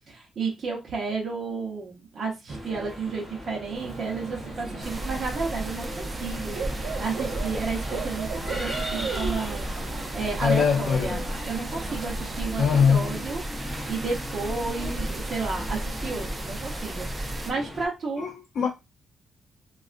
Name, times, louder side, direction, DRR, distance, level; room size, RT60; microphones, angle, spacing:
voice 1, 0.1-9.7 10.1-18.3, right 4 dB, 45° right, 0.9 m, -32 dB
sound 1, 2.5-17.9, left 1 dB, ahead, 0.9 m, -38 dB
Bird / Cricket, 3.8-12.4, right 5 dB, 85° right, 0.5 m, -37 dB
sound 2, 4.8-17.5, right 1 dB, 20° right, 0.5 m, -34 dB
voice 2, 10.4-11.2 12.6-13.1 18.2-18.7, left 6 dB, 65° left, 0.5 m, -22 dB
3.4 x 2.4 x 2.5 m
cardioid pair, 145°, 0 cm